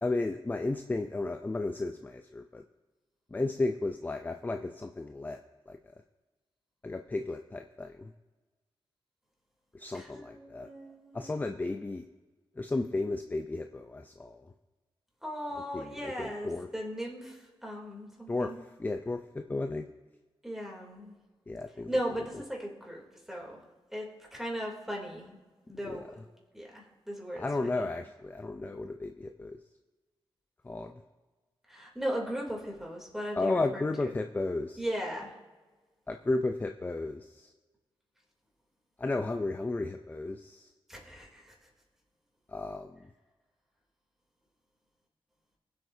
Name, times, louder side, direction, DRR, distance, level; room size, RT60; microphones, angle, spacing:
voice 1, 0.0-2.6 3.3-5.4 5.7-5.8 6.8-8.1 9.7-10.7 11.1-12.1 12.6-14.5 15.7-16.7 18.3-18.5 18.8-19.8 21.5-21.9 25.8-26.0 27.4-29.6 30.6-30.9 33.4-34.8 36.1-37.5 39.0-40.7 42.5-43.0, left 2 dB, 20° left, 6 dB, 0.5 m, -33 dB
voice 2, 9.9-11.3 15.2-18.6 20.4-21.1 21.9-23.6 23.9-25.4 25.7-26.2 26.5-27.9 31.7-34.2 34.8-35.4 40.9-41.5, equal, 5° right, -2 dB, 3.1 m, -38 dB
21.5 x 7.9 x 2.8 m, 1.3 s
cardioid pair, 90°, 9 cm